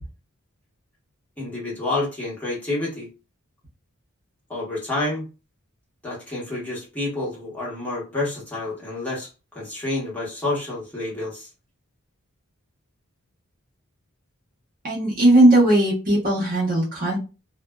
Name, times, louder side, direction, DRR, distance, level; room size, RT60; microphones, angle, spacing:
voice 1, 1.4-3.1 4.5-5.3 6.0-11.5, left 2 dB, 5° left, -6 dB, 1.1 m, -29 dB
voice 2, 14.8-17.2, right 1 dB, 40° right, -4 dB, 0.9 m, -18 dB
2.5 x 2.2 x 2.2 m, 0.31 s
head